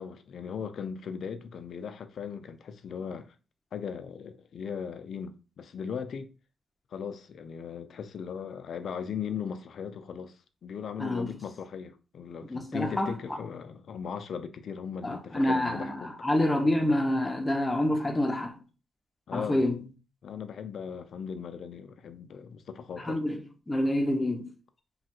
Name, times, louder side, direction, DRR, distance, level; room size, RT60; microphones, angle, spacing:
voice 1, 0.0-3.3 3.7-6.3 6.9-10.3 10.6-16.1 19.3-19.6 20.2-23.2, left 7 dB, 70° left, 0.4 m, -38 dB
voice 2, 11.0-11.3 12.5-13.1 15.0-18.6 19.3-19.8 23.0-23.4 23.7-24.5, left 1 dB, 20° left, 0.7 m, -27 dB
3.1 x 2.3 x 2.9 m
cardioid pair, 75°, 0 cm